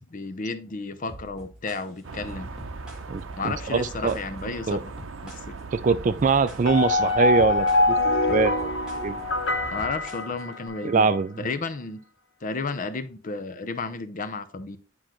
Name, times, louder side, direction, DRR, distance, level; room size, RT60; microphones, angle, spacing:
voice 1, 0.1-2.5 3.4-4.8 5.2-5.6 9.7-11.1 11.4-12.0 12.4-14.8, left 4 dB, 45° left, 0.6 m, -32 dB
sound 1, 1.1-10.7, equal, 5° right, 1.5 m, -45 dB
sound 2, 2.0-9.9, right 4 dB, 85° right, 0.7 m, -40 dB
voice 2, 3.1-4.2 4.7-4.8 5.7-8.7 9.0-9.2 10.8-11.3, right 4 dB, 40° right, 0.4 m, -23 dB
sound 3, 6.7-11.0, left 2 dB, 70° left, 1.0 m, -24 dB
9.5 x 3.8 x 3.0 m
head